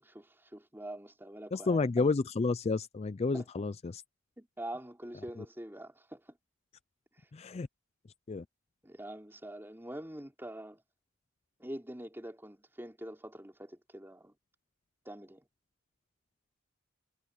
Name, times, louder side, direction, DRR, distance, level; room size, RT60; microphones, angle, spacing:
voice 1, 0.0-1.9 3.3-3.4 4.4-6.4 7.2-7.3 8.8-10.8 11.6-14.3 15.0-15.5, right 1 dB, 10° right, 4.6 m, -45 dB
voice 2, 1.5-4.0 7.3-7.7 8.3-8.4, left 3 dB, 30° left, 0.4 m, -30 dB
head